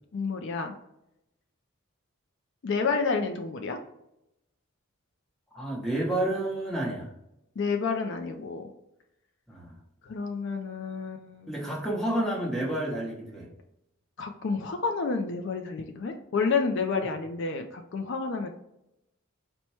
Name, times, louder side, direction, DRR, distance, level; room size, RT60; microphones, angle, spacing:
voice 1, 0.1-0.7 2.6-3.8 7.6-8.7 10.0-11.5 14.2-18.5, left 4 dB, 60° left, 5 dB, 0.4 m, -30 dB
voice 2, 5.5-7.1 9.5-9.7 11.5-13.5, right 1 dB, ahead, -3 dB, 0.9 m, -30 dB
4.4 x 2.2 x 4.2 m, 0.84 s
head